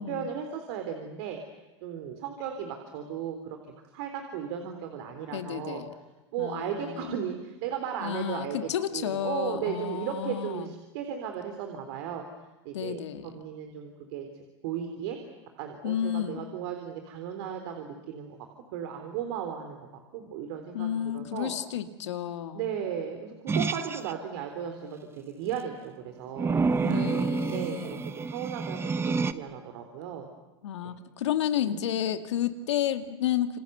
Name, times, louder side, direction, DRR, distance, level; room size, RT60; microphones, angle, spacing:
voice 1, 0.0-1.4 1.8-3.6 3.9-5.8 6.3-12.2 12.6-13.0 13.3-14.3 14.6-15.2 15.6-18.4 18.7-19.9 20.1-21.5 22.5-30.3 30.8-30.9 31.6-31.8, right 8 dB, 60° right, 5 dB, 3.7 m, -36 dB
voice 2, 5.3-5.9 6.4-7.2 8.0-10.7 12.7-13.3 15.8-16.4 20.7-22.7 26.8-28.1 30.6-33.6, left 10 dB, 80° left, 8 dB, 2.3 m, -31 dB
sound 1, 23.5-24.1 26.4-29.3, right 4 dB, 15° right, 1.2 m, -28 dB
28.0 x 26.0 x 8.1 m, 1.0 s
hypercardioid pair, 110°, 15 cm